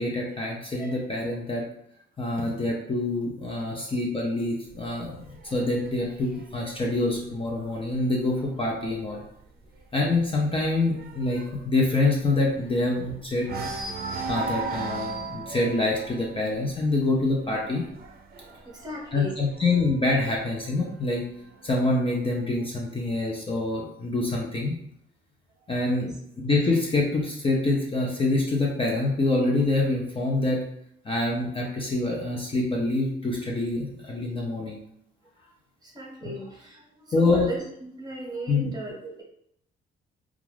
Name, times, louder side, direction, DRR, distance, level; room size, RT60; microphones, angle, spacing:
voice 1, 0.0-1.7 2.2-5.1 5.5-9.2 9.9-13.6 14.3-17.8 19.1-21.2 21.6-24.8 25.7-30.6 31.0-34.8 36.2-36.3 37.1-37.5 38.5-38.7, left 2 dB, 25° left, -2 dB, 0.5 m, -26 dB
sound 1, 4.7-8.3 8.7-9.0 9.3-9.4 9.8-13.0 13.4-20.0 20.8-21.8, right 3 dB, 50° right, 0.5 m, -37 dB
voice 2, 18.5-19.4 26.0-26.1 35.8-39.2, right 1 dB, 20° right, -2 dB, 1.0 m, -38 dB
2.4 x 2.3 x 3.2 m, 0.72 s
cardioid pair, 90°, 20 cm